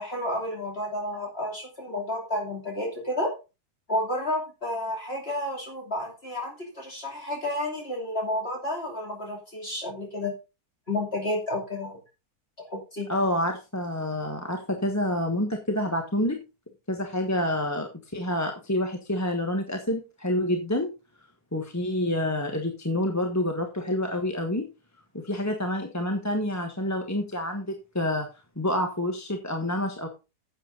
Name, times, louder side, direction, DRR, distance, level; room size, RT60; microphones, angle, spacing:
voice 1, 0.0-3.3 3.9-10.3 10.9-12.0 12.6-13.2, left 1 dB, 40° left, 0 dB, 3.0 m, -31 dB
voice 2, 13.1-16.4 16.9-20.9 21.5-24.7 25.2-28.3 28.6-30.1, left 1 dB, 10° left, 3 dB, 1.1 m, -28 dB
10.5 x 8.1 x 3.8 m, 0.29 s
omnidirectional pair, 1.7 m